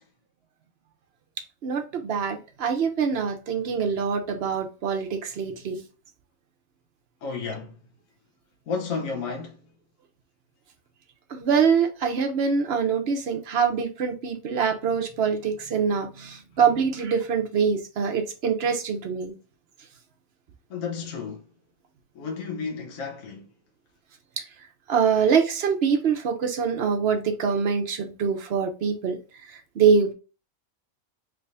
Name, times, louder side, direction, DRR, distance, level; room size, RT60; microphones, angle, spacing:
voice 1, 1.6-5.8 11.3-19.4 24.4-24.5 24.9-29.2 29.5-30.1, right 6 dB, 55° right, 0.8 m, -24 dB
voice 2, 7.2-7.9 8.7-9.7 20.7-21.5 22.1-23.5, left 5 dB, 70° left, 1.2 m, -32 dB
3.5 x 3.2 x 2.5 m
omnidirectional pair, 1.5 m